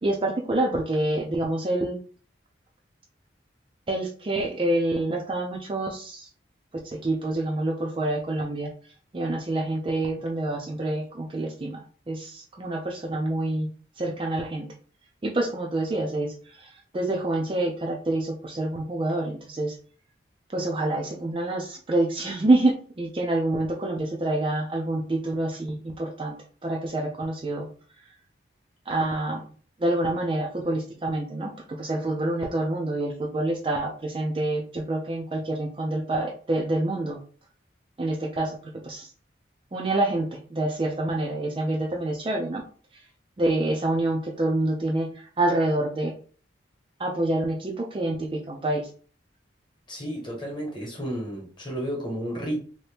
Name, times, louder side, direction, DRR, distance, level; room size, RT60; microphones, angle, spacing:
voice 1, 0.0-2.0 3.9-6.3 6.8-8.7 9.1-14.7 15.2-19.8 20.5-27.7 28.9-29.5 29.8-37.2 38.0-39.1 39.7-42.6 42.9-43.0 43.4-46.1 47.0-48.9, right 2 dB, 25° right, 1 dB, 0.4 m, -27 dB
voice 2, 49.9-52.6, right 1 dB, 25° left, -2 dB, 1.1 m, -32 dB
2.8 x 2.6 x 3.3 m, 0.42 s
head